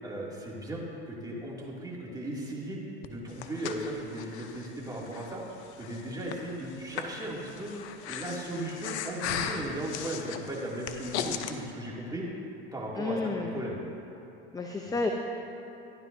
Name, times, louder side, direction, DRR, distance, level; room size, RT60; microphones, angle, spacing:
voice 1, 0.0-5.4 5.8-7.7 8.1-12.2 12.7-13.8 14.9-15.0, right 1 dB, 10° right, -4 dB, 2.4 m, -37 dB
Breathing, 3.0-11.5, left 8 dB, 80° left, 0.7 m, -38 dB
voice 2, 13.0-13.6 14.5-15.1, left 3 dB, 10° left, 2 dB, 0.6 m, -31 dB
14.5 x 10.5 x 2.6 m, 2.9 s
hypercardioid pair, 95°, 33 cm